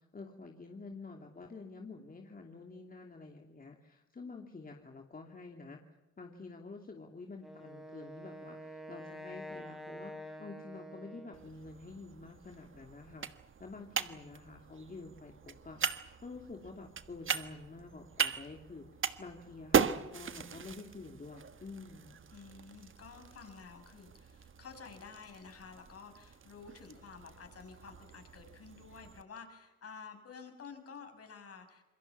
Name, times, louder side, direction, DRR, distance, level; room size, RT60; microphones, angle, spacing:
voice 1, 0.1-5.8 6.2-13.3 13.6-15.8 16.2-18.9 19.2-22.2, left 3 dB, 30° left, 2 dB, 2.8 m, -48 dB
Wind instrument woodwind instrument, 7.4-11.7, equal, ahead, 3.7 m, -47 dB
sound 1, 11.3-29.2, right 7 dB, 40° right, 1.5 m, -39 dB
voice 2, 22.3-31.8, left 5 dB, 50° left, 5 dB, 6.4 m, -51 dB
27.5 x 22.0 x 7.2 m, 1.1 s
cardioid pair, 90°, 30 cm